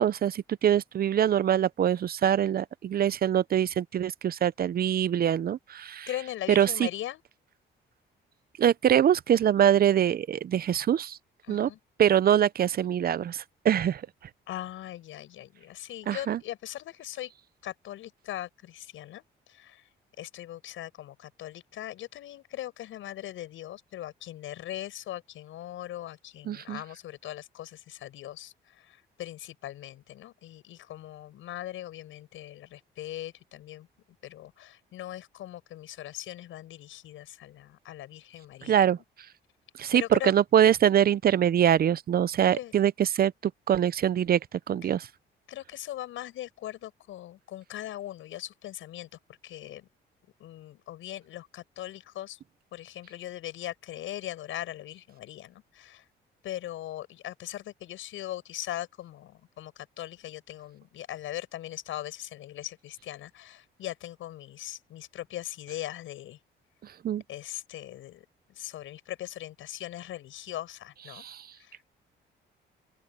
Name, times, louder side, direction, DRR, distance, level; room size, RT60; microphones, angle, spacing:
voice 1, 0.0-6.1 6.5-6.9 8.6-11.2 11.5-11.7 12.0-14.0 16.1-16.4 26.5-26.8 38.7-39.0 39.8-43.3 43.7-44.4 44.7-45.1 67.0-67.2 71.1-71.4, right 10 dB, 50° right, 0.6 m, -24 dB
voice 2, 6.1-7.2 11.5-11.8 14.5-17.3 17.6-19.2 19.5-19.9 20.2-33.9 34.2-39.0 39.9-40.3 42.5-42.9 44.8-45.0 45.5-49.1 49.4-49.9 50.4-52.4 52.7-56.1 56.4-66.4 67.3-68.3 68.6-71.3 71.6-71.8, left 13 dB, 80° left, 7.6 m, -40 dB
open air
cardioid pair, 90°, 20 cm